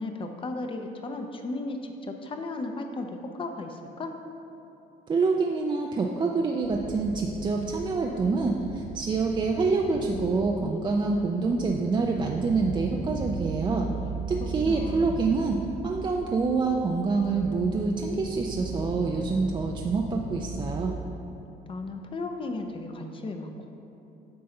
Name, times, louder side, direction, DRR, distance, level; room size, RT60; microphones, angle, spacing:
voice 1, 0.0-4.2 14.4-15.3 21.7-23.7, left 2 dB, 30° left, 5 dB, 0.7 m, -35 dB
voice 2, 5.1-13.9 14.3-21.0, right 4 dB, 25° right, 1 dB, 0.5 m, -26 dB
sound 1, 6.6-21.0, right 3 dB, 90° right, 0.7 m, -38 dB
9.4 x 5.6 x 3.8 m, 2.9 s
cardioid pair, 110°, 17 cm